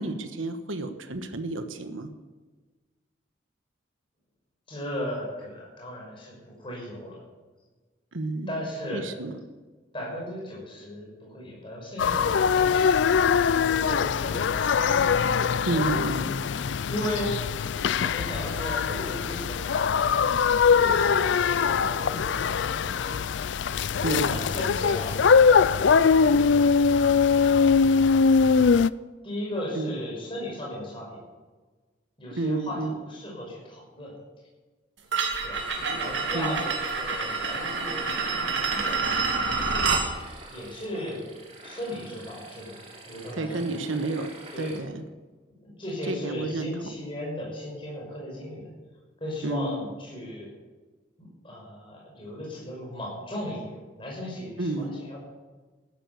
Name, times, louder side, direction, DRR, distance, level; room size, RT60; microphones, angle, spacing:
voice 1, 0.0-2.1 8.1-8.6 8.9-9.4 15.6-16.3 24.0-24.4 29.7-29.9 32.3-33.0 36.3-36.6 43.3-44.3 44.6-45.0 46.0-46.9 49.4-49.8 54.6-54.9, right 2 dB, 85° right, 8 dB, 1.4 m, -30 dB
voice 2, 4.7-7.2 8.5-9.0 9.9-15.1 15.7-17.4 17.8-20.3 20.7-23.2 24.0-26.7 29.2-31.2 32.2-34.1 35.4-35.6 35.9-40.1 40.5-41.2 41.6-42.8 43.1-44.1 44.5-44.8 45.6-48.7 49.2-50.5 51.2-55.2, left 1 dB, 25° left, -3 dB, 6.1 m, -36 dB
sound 1, 12.0-28.9, left 6 dB, 65° left, 0.4 m, -22 dB
sound 2, 35.1-40.1, right 4 dB, 70° right, 2.6 m, -27 dB
sound 3, 35.5-44.8, right 2 dB, 30° right, 3.1 m, -45 dB
14.5 x 12.5 x 6.9 m, 1.3 s
head